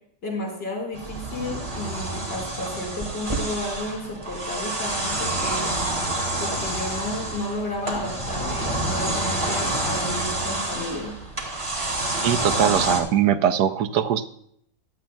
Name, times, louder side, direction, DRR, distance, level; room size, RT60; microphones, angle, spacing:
voice 1, 0.2-5.7 6.4-11.1, left 2 dB, 85° left, -4 dB, 5.4 m, -32 dB
sound 1, 0.9-13.0, right 2 dB, 20° right, 2.0 m, -28 dB
voice 2, 12.2-14.3, right 9 dB, 75° right, 10 dB, 1.2 m, -21 dB
16.0 x 12.0 x 2.3 m, 0.69 s
omnidirectional pair, 1.8 m